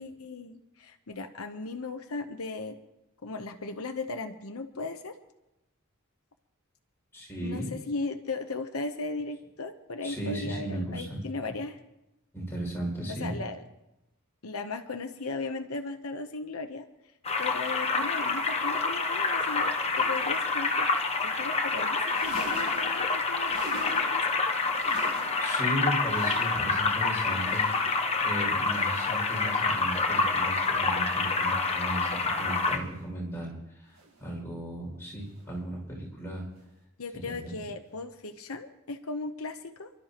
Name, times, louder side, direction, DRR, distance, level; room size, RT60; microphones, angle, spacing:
voice 1, 0.0-2.8 3.2-5.2 7.4-11.8 13.1-13.6 14.4-16.8 17.4-19.7 20.0-20.9 21.2-24.5 37.0-39.9, left 3 dB, 80° left, 6 dB, 0.9 m, -37 dB
voice 2, 7.1-7.7 10.0-11.2 12.3-13.3 25.0-27.7 28.2-36.5 37.1-37.6, right 1 dB, 10° left, -3 dB, 6.1 m, -36 dB
sound 1, 17.2-32.8, left 4 dB, 30° left, 1.1 m, -27 dB
sound 2, 22.0-24.3 24.6-25.6 25.9-26.9 27.3-28.1 28.6-29.3 29.9-30.6 31.2-31.8 32.5-33.1 33.9-34.3 35.2-35.5 36.5-36.7 37.9-38.0, right 2 dB, 75° right, 5.0 m, -46 dB
29.5 x 12.5 x 3.0 m, 0.95 s
head